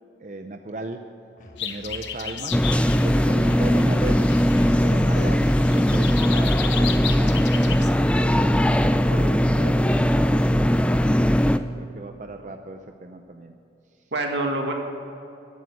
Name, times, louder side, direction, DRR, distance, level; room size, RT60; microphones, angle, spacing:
voice 1, 0.2-1.0 1.6-2.6 2.9-4.3 4.7-7.9 10.1-11.1 11.6-13.6, right 2 dB, 40° right, 5 dB, 0.6 m, -37 dB
Musical instrument, 1.4-8.5, equal, 45° left, 1.3 m, -47 dB
sound 1, 1.6-7.9, left 9 dB, 85° left, 0.9 m, -35 dB
sound 2, 2.5-11.6, equal, 5° left, 0.3 m, -19 dB
voice 2, 9.1-9.8 14.1-14.7, right 2 dB, 80° right, 2 dB, 1.9 m, -28 dB
14.0 x 9.5 x 7.9 m, 2.7 s
head